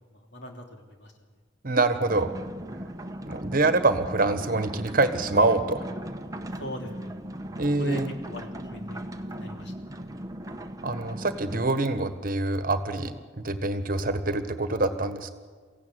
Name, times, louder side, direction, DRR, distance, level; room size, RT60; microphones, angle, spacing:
voice 1, 0.1-1.1 6.6-7.5 7.8-9.0 9.2-9.7, equal, 70° left, 3 dB, 3.3 m, -40 dB
voice 2, 1.6-2.3 3.3-5.8 7.6-8.1 10.8-15.3, right 2 dB, 50° right, 10 dB, 1.5 m, -25 dB
sound 1, 2.1-11.7, right 1 dB, 20° right, 1.1 m, -38 dB
23.0 x 16.0 x 9.4 m, 1.5 s
head